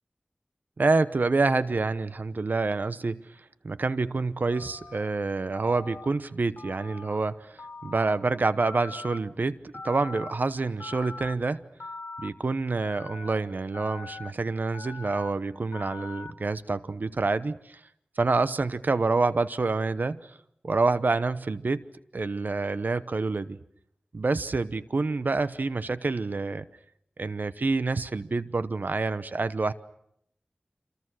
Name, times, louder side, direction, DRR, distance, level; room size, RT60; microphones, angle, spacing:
voice 1, 0.8-3.2 3.6-11.6 12.2-17.8 18.2-20.3 20.6-21.8 22.1-23.6 24.1-26.7 27.2-29.7, right 3 dB, 70° right, 14 dB, 1.0 m, -27 dB
Telephone, 4.5-5.0 5.5-6.1 6.6-7.2 7.6-8.2 8.6-9.2 9.7-10.3 10.8-11.3 11.8-12.3 12.8-13.3 13.7-14.3 14.7-15.3 15.7-16.3, left 3 dB, 70° left, 3.5 m, -41 dB
28.0 x 27.0 x 6.4 m, 0.73 s
wide cardioid pair, 60°, 3 cm